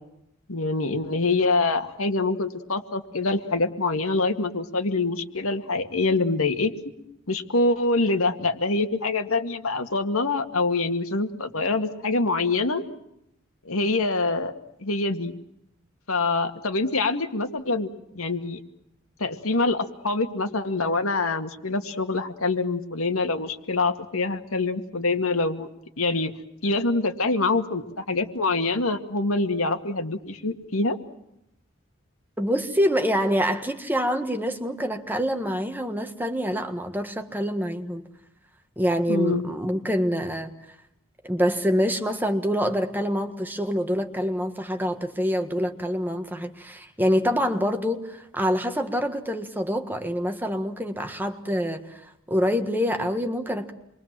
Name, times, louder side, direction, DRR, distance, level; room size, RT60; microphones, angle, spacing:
voice 1, 0.5-6.7 7.3-12.8 13.7-14.5 14.8-15.3 16.1-18.6 19.2-25.7 26.0-26.3 26.6-31.0 39.1-39.4, left 3 dB, 80° left, 7 dB, 2.1 m, -25 dB
voice 2, 32.4-38.0 38.8-40.5 41.2-52.0 52.3-53.7, equal, 10° right, 6 dB, 1.6 m, -26 dB
28.0 x 23.0 x 7.5 m, 0.81 s
head